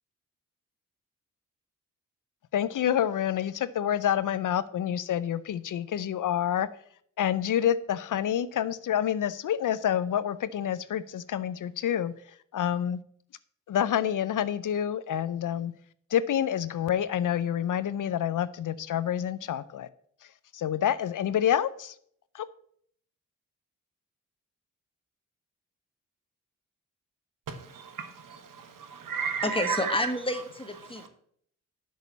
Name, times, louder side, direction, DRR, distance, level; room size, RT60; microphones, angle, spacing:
voice 1, 2.5-6.7 7.2-12.1 12.5-13.0 13.7-15.7 16.1-19.9 20.5-22.0 22.3-22.5, left 10 dB, 70° left, 16 dB, 0.6 m, -28 dB
voice 2, 27.5-28.4 28.8-29.9, right 6 dB, 70° right, 9 dB, 1.3 m, -33 dB
voice 3, 29.4-31.1, left 1 dB, 15° left, 7 dB, 1.6 m, -29 dB
6.7 x 6.4 x 7.1 m, 0.63 s
supercardioid pair, 45°, 33 cm